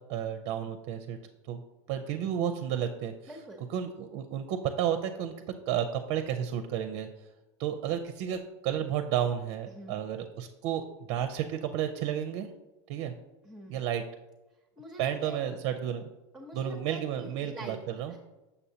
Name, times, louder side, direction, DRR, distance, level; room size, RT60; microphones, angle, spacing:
voice 1, 0.1-1.2 1.5-1.6 1.9-3.1 3.7-7.1 7.6-12.5 12.9-13.1 13.7-14.0 15.0-16.1 16.5-18.1, right 9 dB, 55° right, 7 dB, 0.5 m, -32 dB
voice 2, 3.3-3.7 9.7-10.0 13.4-13.8 14.8-15.4 16.3-18.2, right 1 dB, 5° right, -1 dB, 0.7 m, -45 dB
6.8 x 5.6 x 2.7 m, 1.1 s
supercardioid pair, 115°, 15 cm